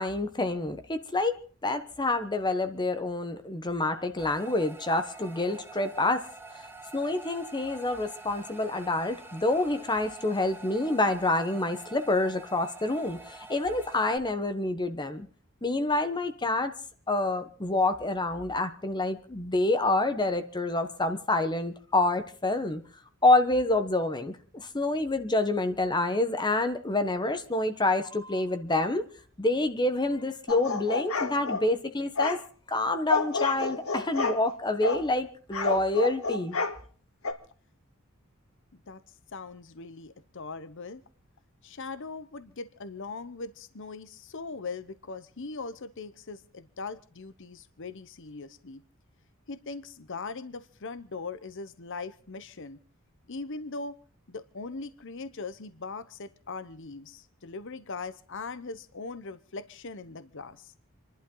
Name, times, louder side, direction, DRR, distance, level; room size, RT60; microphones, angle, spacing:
voice 1, 0.0-1.3 1.6-6.2 6.9-15.3 15.6-16.7 17.1-22.8 23.2-29.0 29.4-32.4 32.7-36.6, left 2 dB, 20° left, 9 dB, 1.1 m, -27 dB
sound 1, 4.2-14.2, right 3 dB, 10° right, 1.8 m, -47 dB
sound 2, 30.5-31.7 32.2-32.4 33.1-34.4 34.8-35.0 35.5-36.8 37.2-37.3, left 3 dB, 80° left, 2.1 m, -29 dB
voice 2, 39.3-41.0 41.6-48.8 49.5-52.8 53.3-54.0 54.3-60.7, left 4 dB, 60° left, 13 dB, 0.9 m, -40 dB
28.5 x 11.5 x 3.9 m, 0.43 s
head